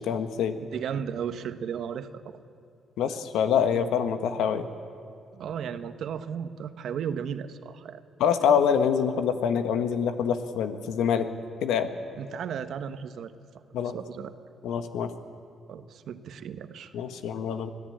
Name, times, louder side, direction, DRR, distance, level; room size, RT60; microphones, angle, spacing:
voice 1, 0.0-0.6 3.0-4.7 8.2-11.3 11.6-11.9 13.7-13.9 14.6-15.1 16.9-17.7, left 7 dB, 85° left, 9 dB, 1.4 m, -25 dB
voice 2, 0.6-2.4 5.3-8.0 12.2-13.3 13.9-14.3 15.7-16.9, right 8 dB, 70° right, 10 dB, 1.1 m, -35 dB
25.0 x 16.0 x 8.8 m, 2.4 s
cardioid pair, 90°, 0 cm